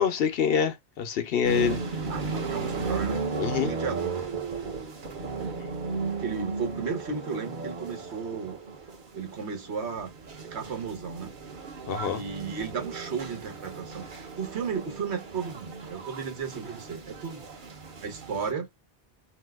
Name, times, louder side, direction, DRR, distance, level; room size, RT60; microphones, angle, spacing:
voice 1, 0.0-1.8 3.4-3.7 11.9-12.2, left 8 dB, 65° left, 0.8 m, -26 dB
sound 1, 1.4-18.5, right 4 dB, 50° right, 0.9 m, -35 dB
voice 2, 2.1-3.2 3.5-4.2 6.2-8.6 9.1-10.1 10.4-11.3 12.1-17.5 18.0-18.7, right 6 dB, 90° right, 1.2 m, -34 dB
2.8 x 2.2 x 3.3 m
omnidirectional pair, 1.1 m